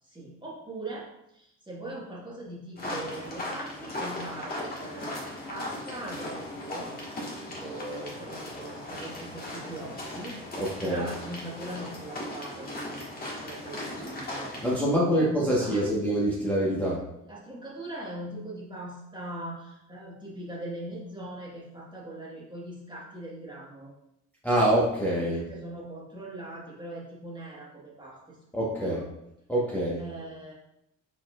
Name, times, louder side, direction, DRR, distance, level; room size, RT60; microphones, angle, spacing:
voice 1, 0.0-5.1 5.5-6.9 7.4-10.4 10.7-13.1 13.4-13.8 14.1-14.6 15.1-15.9 17.3-23.9 25.2-28.4 28.7-29.0 30.0-30.5, right 1 dB, 15° right, -5 dB, 1.5 m, -40 dB
sound 1, 2.8-14.8, left 1 dB, 30° left, 1.6 m, -38 dB
voice 2, 10.6-11.1 14.6-17.0 24.4-25.4 28.5-29.0 29.5-30.0, right 1 dB, 5° left, -7 dB, 1.2 m, -25 dB
5.0 x 4.1 x 2.4 m, 0.81 s
cardioid pair, 90°, 30 cm